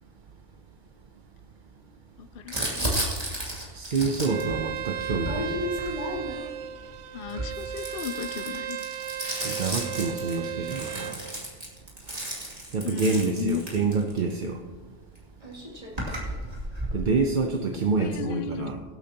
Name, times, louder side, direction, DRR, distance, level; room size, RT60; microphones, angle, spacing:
voice 1, 2.2-3.1 7.1-8.8 12.8-13.6 16.2-16.3 18.0-18.8, left 7 dB, 60° left, 12 dB, 0.7 m, -35 dB
Crumpling crinkling, 2.5-6.5 7.2-14.3 15.2-15.3 15.4-17.0, equal, 30° right, 2.8 m, -33 dB
voice 2, 3.7-5.7 9.4-11.2 12.7-14.6 16.9-18.8, right 4 dB, 45° right, 4 dB, 0.8 m, -27 dB
Bowed string instrument, 4.2-11.2, right 10 dB, 75° right, 0.9 m, -35 dB
23.0 x 8.7 x 2.9 m, 1.4 s
omnidirectional pair, 1.2 m